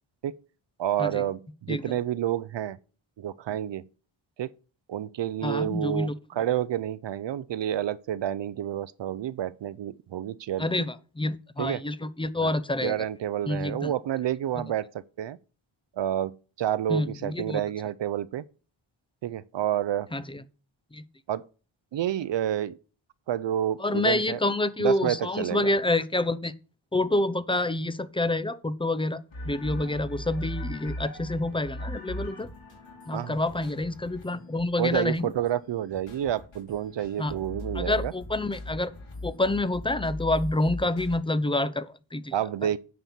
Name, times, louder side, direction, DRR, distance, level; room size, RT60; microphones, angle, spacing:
voice 1, 0.8-2.8 3.2-3.8 4.4-4.5 4.9-10.8 11.6-11.8 12.4-12.6 12.8-14.9 15.2-15.4 16.0-18.4 19.2-20.1 21.3-21.4 21.9-22.8 23.3-24.4 24.8-25.7 33.1-33.4 34.8-38.1 42.3-42.8, right 11 dB, 60° right, 0.5 m, -29 dB
voice 2, 5.4-6.2 10.6-12.9 13.5-13.9 16.9-17.6 20.1-20.4 20.9-21.0 23.8-26.5 26.9-32.5 33.1-35.3 37.2-37.3 37.7-38.9 39.2-42.3, left 2 dB, 10° left, 0.5 m, -28 dB
sound 1, 29.3-41.2, left 1 dB, 60° left, 3.2 m, -39 dB
9.1 x 4.3 x 7.1 m
wide cardioid pair, 115°, 49 cm